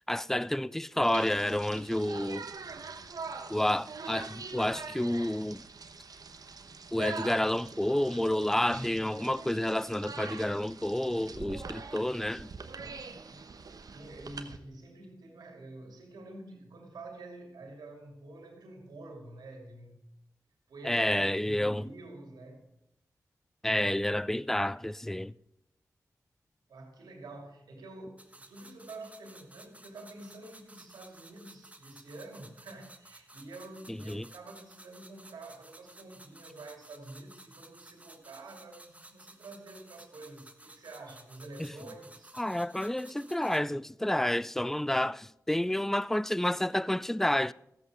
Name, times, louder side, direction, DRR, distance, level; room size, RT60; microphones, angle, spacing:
voice 1, 0.1-2.5 3.5-5.6 6.9-12.5 20.8-21.9 23.6-25.3 33.9-34.3 41.6-41.7 42.4-47.5, left 1 dB, 5° left, 0.4 m, -29 dB
sound 1, 1.0-14.6, right 4 dB, 70° right, 1.0 m, -44 dB
voice 2, 12.7-13.5 13.9-20.0 20.7-22.7 26.7-42.3, right 2 dB, 90° right, 2.6 m, -48 dB
sound 2, 28.2-43.6, right 1 dB, 20° right, 1.2 m, -55 dB
14.0 x 8.1 x 4.8 m
cardioid pair, 40°, 7 cm